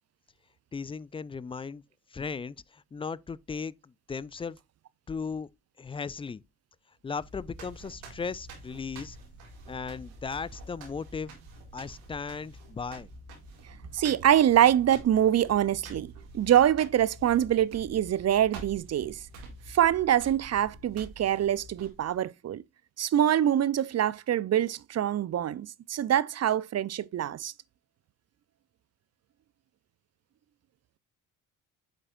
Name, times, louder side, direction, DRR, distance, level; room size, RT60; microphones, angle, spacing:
voice 1, 0.7-1.8 2.1-4.6 5.1-5.5 5.8-6.4 7.0-9.2 9.7-11.3 11.7-13.1, left 5 dB, 15° left, 0.3 m, -37 dB
sound 1, 7.1-22.2, right 2 dB, 85° right, 2.2 m, -47 dB
voice 2, 13.9-19.2 19.7-22.6 23.0-27.5, right 11 dB, 40° right, 0.6 m, -25 dB
8.9 x 6.5 x 2.5 m
hypercardioid pair, 55°, 41 cm